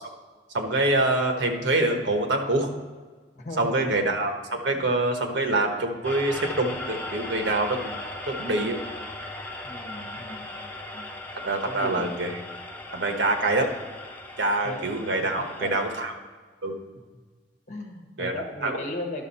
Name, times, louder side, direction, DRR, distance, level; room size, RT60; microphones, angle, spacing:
voice 1, 0.5-2.7 3.6-7.9 8.3-8.8 11.4-12.4 12.9-13.7 14.4-16.1 16.6-16.8 18.2-18.3 18.6-18.8, right 2 dB, 85° right, 4 dB, 1.2 m, -25 dB
voice 2, 3.3-3.9 4.7-4.9 9.6-11.1 11.6-12.1 14.6-14.9 15.4-15.7 17.7-19.2, left 1 dB, 45° left, 2 dB, 1.5 m, -37 dB
sound 1, 6.0-16.1, left 1 dB, 10° left, 0.7 m, -38 dB
11.5 x 6.2 x 4.2 m, 1.4 s
head